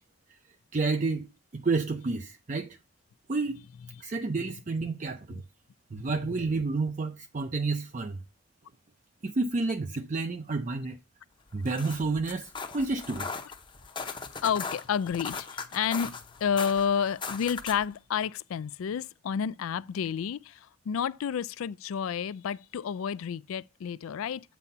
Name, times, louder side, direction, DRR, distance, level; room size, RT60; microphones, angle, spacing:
voice 1, 0.7-1.3 1.5-2.8 3.3-3.6 4.0-5.4 5.9-8.2 9.2-11.0 11.5-13.3, right 3 dB, 35° right, 0.5 m, -30 dB
sound 1, 11.5-17.9, left 5 dB, 25° left, 0.7 m, -39 dB
voice 2, 14.4-24.4, left 7 dB, 85° left, 0.3 m, -30 dB
8.3 x 4.1 x 5.4 m
head